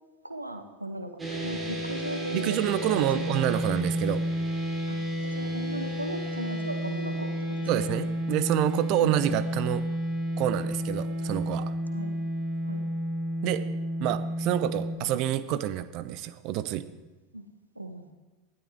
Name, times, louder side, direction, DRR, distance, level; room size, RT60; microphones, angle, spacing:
voice 1, 0.2-3.3 4.9-7.7 9.0-9.2 11.9-12.1 12.6-12.8 17.3-17.5 17.7-18.1, right 1 dB, 85° right, 8 dB, 1.2 m, -37 dB
sound 1, 1.2-15.0, equal, 15° right, 3.7 m, -31 dB
voice 2, 2.3-4.2 7.7-9.8 10.4-11.7 13.4-13.7 14.0-16.9, right 12 dB, 45° right, 14 dB, 0.8 m, -28 dB
19.5 x 12.0 x 3.6 m, 1.2 s
figure-of-eight pair, 80°, 0 cm